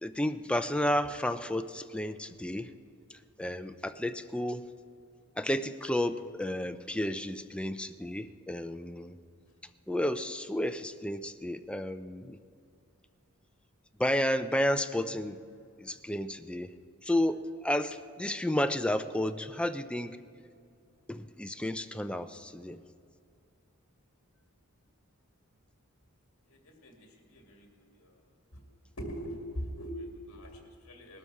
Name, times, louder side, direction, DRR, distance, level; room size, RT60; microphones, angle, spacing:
voice 1, 0.0-2.7 3.4-4.7 5.4-9.1 9.9-12.4 14.0-15.4 15.8-16.7 17.1-20.2 21.1-22.8, left 1 dB, 5° left, 9 dB, 0.4 m, -32 dB
voice 2, 26.5-28.2 28.5-28.6 29.0-31.2, equal, 65° left, 2 dB, 2.2 m, -42 dB
19.0 x 12.5 x 4.7 m, 2.4 s
head